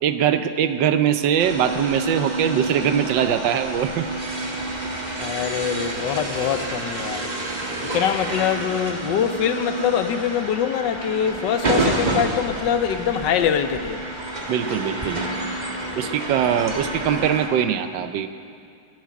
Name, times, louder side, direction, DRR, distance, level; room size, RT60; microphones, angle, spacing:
voice 1, 0.0-4.1 5.1-5.3 14.5-15.2 16.0-18.3, right 9 dB, 75° right, 10 dB, 1.4 m, -22 dB
sound 1, 1.4-17.5, right 2 dB, 25° right, 1.3 m, -29 dB
voice 2, 5.2-7.3 7.9-14.0, left 9 dB, 75° left, 10 dB, 1.3 m, -23 dB
13.5 x 7.6 x 9.5 m, 2.3 s
omnidirectional pair, 2.0 m